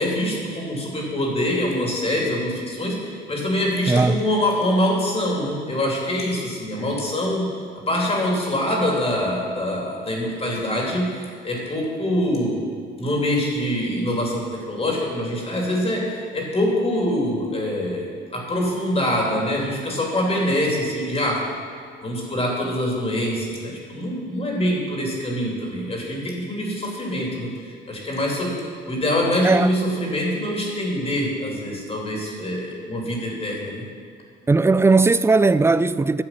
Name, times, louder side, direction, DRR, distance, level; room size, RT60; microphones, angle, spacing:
voice 1, 0.0-7.5 7.9-12.6 13.0-18.1 18.3-21.4 22.0-27.5 27.9-33.8, left 1 dB, 30° left, 3.0 m, -24 dB
voice 2, 3.9-4.2 29.4-29.7 34.5-36.2, right 3 dB, 15° right, 0.3 m, -17 dB
11.5 x 7.5 x 5.9 m
cardioid pair, 90°, 20 cm